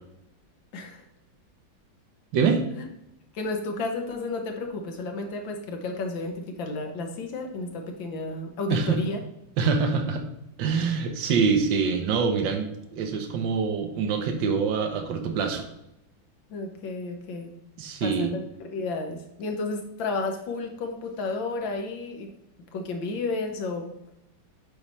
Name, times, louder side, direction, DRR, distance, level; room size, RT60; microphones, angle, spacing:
voice 1, 0.7-1.0 2.8-2.9 3.3-9.2 16.5-17.5 18.0-22.3 22.7-23.9, left 3 dB, 90° left, 3 dB, 1.9 m, -32 dB
voice 2, 8.7-9.0 9.6-10.3 10.6-15.7 17.8-18.3, right 5 dB, 80° right, 5 dB, 1.6 m, -25 dB
8.4 x 3.1 x 5.5 m, 0.85 s
omnidirectional pair, 2.0 m